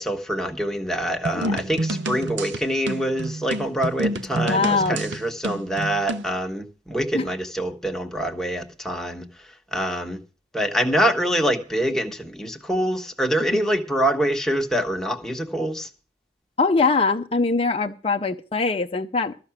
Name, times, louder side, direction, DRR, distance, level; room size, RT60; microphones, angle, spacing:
voice 1, 0.0-9.2 9.7-10.2 10.5-15.9, right 1 dB, 5° left, 1.3 m, -25 dB
sound 1, 1.2-6.3, right 1 dB, 90° right, 0.8 m, -29 dB
voice 2, 4.3-5.0 7.1-7.3 13.5-13.6 16.6-19.4, left 3 dB, 35° left, 0.6 m, -22 dB
13.5 x 5.8 x 8.8 m
head